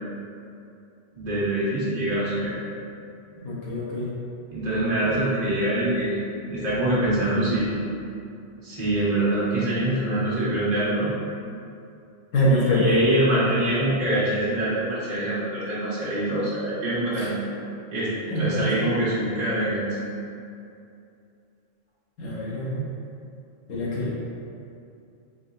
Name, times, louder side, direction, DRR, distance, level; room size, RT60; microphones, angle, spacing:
voice 1, 1.2-2.6 4.5-6.2 6.5-7.7 8.6-11.2 12.5-17.3 17.9-20.0, right 1 dB, 35° right, -10 dB, 1.2 m, -25 dB
voice 2, 3.4-4.1 12.3-13.0 17.2-17.3 18.3-19.0 22.2-22.8 23.7-24.2, equal, 85° left, -6 dB, 1.2 m, -24 dB
3.9 x 3.5 x 2.6 m, 2.6 s
omnidirectional pair, 1.3 m